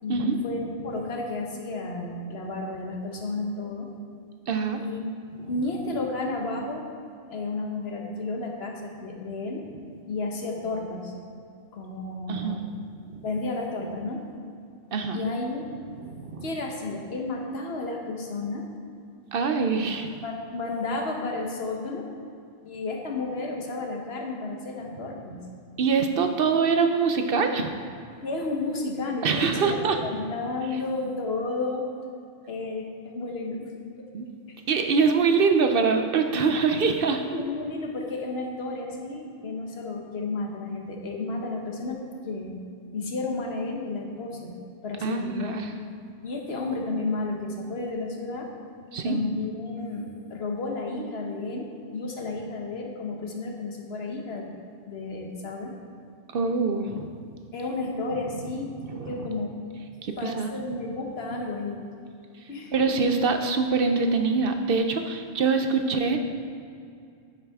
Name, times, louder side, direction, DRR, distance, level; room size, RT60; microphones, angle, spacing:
voice 1, 0.0-3.9 4.7-5.0 5.5-6.9 7.3-9.6 10.1-11.1 11.7-12.6 13.2-14.3 15.1-15.6 16.4-18.7 20.2-22.1 22.6-25.4 28.2-31.8 32.5-33.7 37.3-42.6 42.9-44.5 44.8-45.6 46.2-48.5 49.0-54.5 54.9-55.8 57.5-59.5 60.2-61.8 62.5-63.0 65.7-65.9, left 3 dB, 55° left, 1 dB, 1.2 m, -32 dB
voice 2, 4.5-4.8 12.3-12.6 13.1-13.2 14.9-15.2 16.0-16.5 19.3-20.1 25.8-27.7 29.2-30.0 34.1-34.3 34.7-37.2 45.0-45.7 48.9-49.2 56.3-57.1 59.0-59.1 60.0-60.5 62.7-66.2, right 5 dB, 60° right, 6 dB, 0.7 m, -24 dB
9.8 x 7.3 x 3.5 m, 2.4 s
omnidirectional pair, 1.3 m